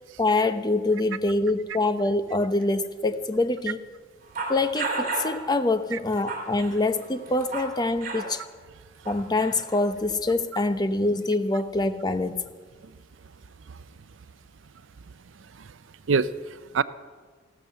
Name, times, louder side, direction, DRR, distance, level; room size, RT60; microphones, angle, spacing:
voice 1, 0.2-3.8 4.5-8.4 9.1-12.4, left 2 dB, 20° left, 10 dB, 0.8 m, -25 dB
sound 1, 4.4-5.4 6.0-7.8 8.0-8.3 9.1-9.8, right 3 dB, 45° right, 3.0 m, -32 dB
voice 2, 16.1-16.8, right 5 dB, 90° right, 15 dB, 0.5 m, -26 dB
15.0 x 12.5 x 6.5 m, 1.5 s
head